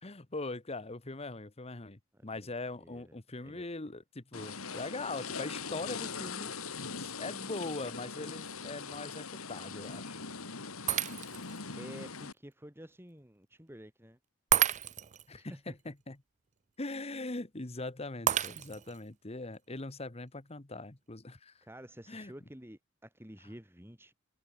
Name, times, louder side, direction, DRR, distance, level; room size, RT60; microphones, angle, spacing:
voice 1, 0.0-6.5 6.9-10.2 15.3-16.2 16.8-21.6 22.1-22.3, left 2 dB, 30° left, 1.2 m, -41 dB
voice 2, 2.1-3.7 11.7-14.2 15.3-15.7 21.6-24.1, equal, 10° right, 4.4 m, -51 dB
sound 1, 4.3-12.3, left 5 dB, 90° left, 3.0 m, -41 dB
Shatter, 10.9-11.6 12.2-12.3 14.5-15.2 18.3-19.0, right 10 dB, 35° right, 0.5 m, -30 dB
head